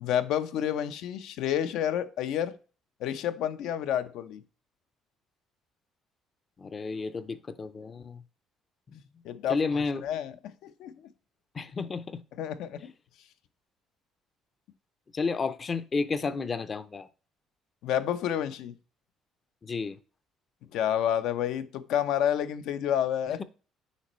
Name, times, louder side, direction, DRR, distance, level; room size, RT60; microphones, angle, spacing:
voice 1, 0.0-2.5 3.0-4.4 9.2-9.6 10.0-10.3 10.6-10.9 12.4-12.9 17.8-18.7 20.7-23.4, left 10 dB, 75° left, 0.7 m, -29 dB
voice 2, 6.6-8.2 8.9-9.0 9.5-10.1 11.5-12.2 12.8-12.9 15.1-17.1 19.6-20.0 23.3-23.4, left 4 dB, 30° left, 0.5 m, -32 dB
8.3 x 5.2 x 3.1 m
cardioid pair, 140°, 0 cm